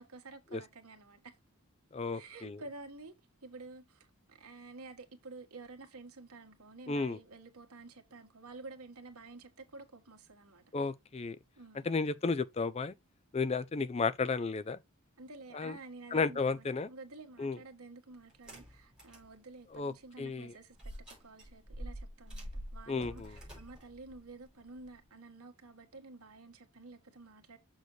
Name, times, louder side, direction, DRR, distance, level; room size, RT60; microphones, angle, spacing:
voice 1, 0.0-1.4 2.1-3.1 3.4-10.6 11.6-11.9 15.2-20.9 21.2-27.6, right 3 dB, 80° right, 1.7 m, -51 dB
voice 2, 1.9-2.6 6.9-7.2 10.7-11.4 11.9-12.9 13.3-14.8 15.5-15.7 16.1-16.9 17.4-17.6 19.7-19.9 20.2-20.5 22.9-23.3, left 4 dB, 30° left, 0.4 m, -33 dB
sound 1, 18.3-19.3 19.7-19.8 20.8-25.0, equal, 5° right, 4.4 m, -46 dB
6.8 x 6.3 x 3.1 m
head